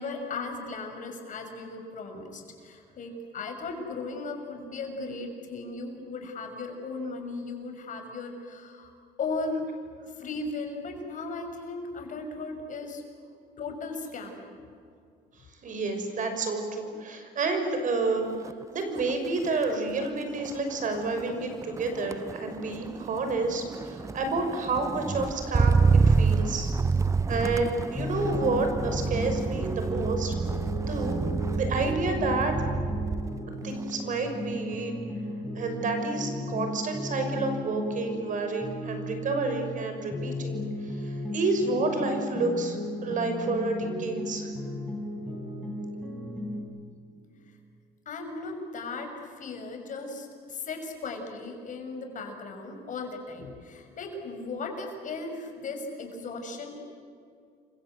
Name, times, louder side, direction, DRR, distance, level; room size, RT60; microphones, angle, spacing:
voice 1, 0.0-8.9 9.2-9.6 10.1-13.0 13.6-14.4 47.5-47.6 48.0-56.8, left 3 dB, 50° left, 4 dB, 6.3 m, -37 dB
voice 2, 15.6-18.3 18.7-26.7 27.3-30.3 30.9-31.2 31.5-32.6 33.6-34.9 35.5-44.5, right 3 dB, 50° right, 6 dB, 6.0 m, -29 dB
Motor vehicle (road), 18.3-18.6 19.0-33.4 33.8-34.2, right 4 dB, 20° right, 0.6 m, -28 dB
sound 1, 28.0-39.8 40.1-46.6, left 1 dB, 5° left, 7.8 m, -35 dB
29.5 x 25.0 x 8.0 m, 2.4 s
cardioid pair, 110°, 17 cm